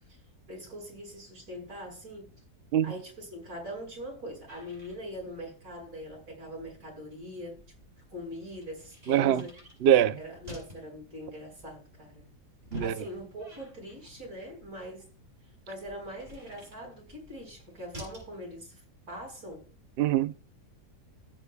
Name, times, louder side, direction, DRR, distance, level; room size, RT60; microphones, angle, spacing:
voice 1, 0.5-2.3 2.8-7.6 8.1-9.6 10.2-12.3 12.8-15.1 15.7-18.8 19.1-19.6, equal, 65° right, 6.3 m, -42 dB
sound 1, 4.5-18.3, equal, 35° right, 6.9 m, -51 dB
voice 2, 9.1-9.4 9.8-10.2 12.7-13.0 20.0-20.3, right 11 dB, 80° right, 0.5 m, -23 dB
20.0 x 8.2 x 2.3 m
omnidirectional pair, 1.8 m